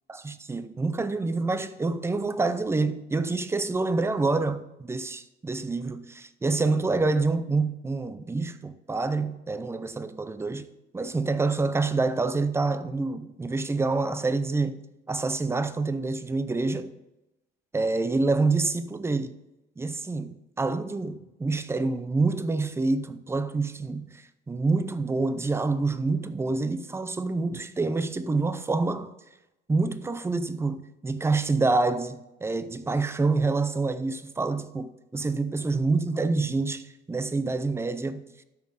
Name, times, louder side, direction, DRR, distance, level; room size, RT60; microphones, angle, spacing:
voice 1, 0.1-10.7 10.9-14.8 15.1-16.9 17.7-19.3 19.8-29.1 29.7-38.3, right 3 dB, 15° right, 0.5 m, -27 dB
12.5 x 5.2 x 5.2 m
cardioid pair, 125°, 20 cm